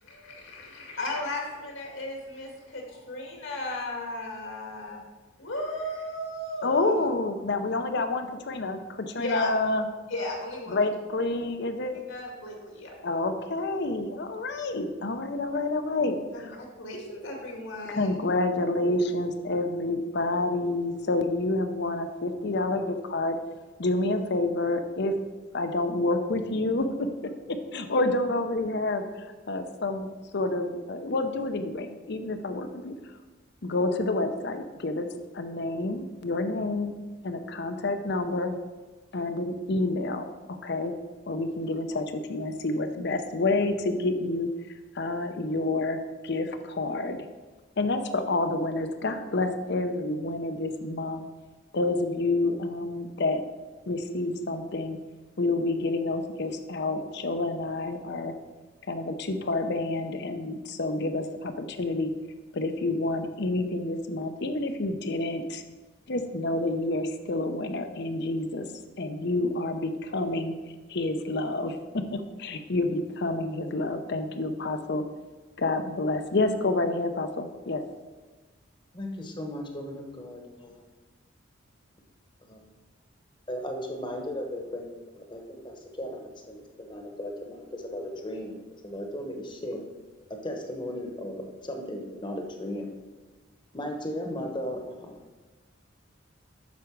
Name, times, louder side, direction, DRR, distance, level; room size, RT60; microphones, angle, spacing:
voice 1, 0.0-5.0 5.4-7.0 9.1-9.5 10.1-10.8 12.1-12.9 16.3-18.1 18.9-19.0 19.5-19.6, left 1 dB, 75° left, 0 dB, 2.1 m, -35 dB
voice 2, 6.6-9.9 10.7-12.0 13.0-16.6 17.9-23.4 23.8-25.1 25.5-29.0 29.5-30.1 30.3-32.9 33.6-35.1 35.3-36.9 37.2-38.6 39.1-40.9 41.3-44.5 44.9-46.0 46.2-47.2 47.8-51.2 51.7-53.4 53.9-55.0 55.4-58.3 58.9-62.1 62.5-65.6 66.1-68.7 69.0-70.6 70.9-75.0 75.6-77.8, left 2 dB, 55° left, 8 dB, 0.7 m, -28 dB
voice 3, 78.9-80.8 82.5-82.6 83.5-84.9 85.2-88.5 88.8-89.8 90.4-92.9 93.7-95.2, left 1 dB, 25° left, 2 dB, 1.1 m, -36 dB
8.4 x 6.3 x 4.6 m, 1.3 s
head